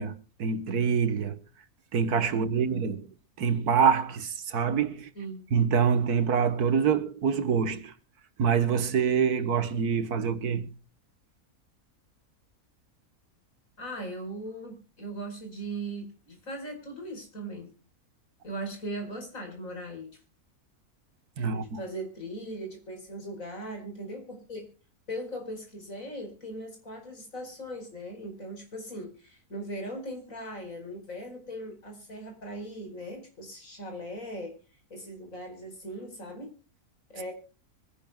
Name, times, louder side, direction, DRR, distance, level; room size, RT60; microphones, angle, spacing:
voice 1, 0.0-1.4 1.9-3.1 3.4-5.1 5.5-7.9 8.4-10.7 21.4-21.8, right 6 dB, 85° right, 1.8 m, -26 dB
voice 2, 2.3-2.9 5.2-5.5 13.8-17.7 18.4-20.2 21.5-24.7 25.1-34.6 34.9-36.5 37.1-37.3, right 1 dB, 60° left, 5.3 m, -39 dB
24.5 x 10.5 x 2.3 m
omnidirectional pair, 1.6 m